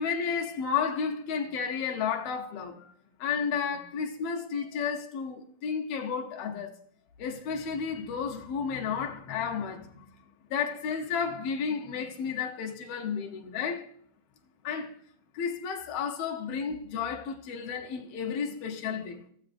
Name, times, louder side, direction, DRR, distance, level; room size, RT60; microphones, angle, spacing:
voice 1, 0.0-2.9 3.2-6.7 7.2-10.1 10.5-13.9 14.6-15.0 15.3-19.2, left 6 dB, 65° left, 1.8 m, -32 dB
15.5 x 7.4 x 2.6 m
omnidirectional pair, 3.3 m